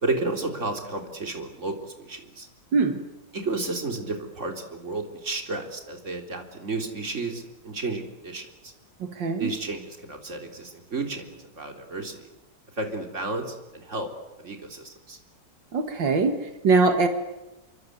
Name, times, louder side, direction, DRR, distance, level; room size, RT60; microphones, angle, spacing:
voice 1, 0.0-2.5 3.3-8.7 9.4-11.3 11.6-12.3 12.8-14.1 14.4-15.2, right 3 dB, 40° right, 3 dB, 3.8 m, -32 dB
voice 2, 2.7-3.0 9.0-9.5 15.7-17.1, right 4 dB, 85° right, 7 dB, 2.4 m, -22 dB
28.0 x 23.5 x 8.1 m, 1.0 s
omnidirectional pair, 1.9 m